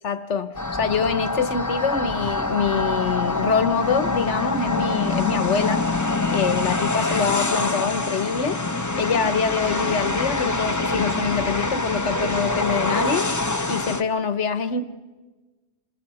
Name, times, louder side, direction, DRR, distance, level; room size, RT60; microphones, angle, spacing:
voice 1, 0.0-5.9 6.3-8.6 9.0-13.3 13.7-14.8, left 6 dB, 85° left, 10 dB, 1.4 m, -25 dB
sound 1, 0.5-14.0, left 2 dB, 20° left, 0.8 m, -25 dB
29.5 x 27.5 x 4.3 m, 1.2 s
omnidirectional pair, 1.2 m